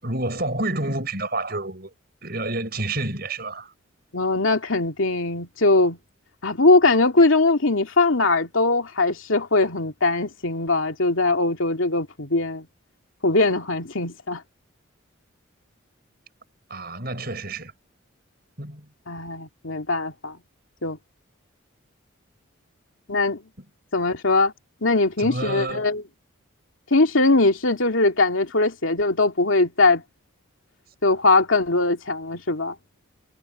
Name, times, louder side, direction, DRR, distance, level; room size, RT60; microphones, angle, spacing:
voice 1, 0.0-1.9 2.2-3.7 16.7-17.7 18.6-18.9 25.2-26.0, right 2 dB, 45° right, 7.2 m, -29 dB
voice 2, 4.1-6.0 6.4-12.7 13.2-14.4 19.1-20.4 20.8-21.0 23.1-23.4 23.9-24.5 24.8-26.0 26.9-30.0 31.0-32.8, left 2 dB, 75° left, 2.5 m, -21 dB
head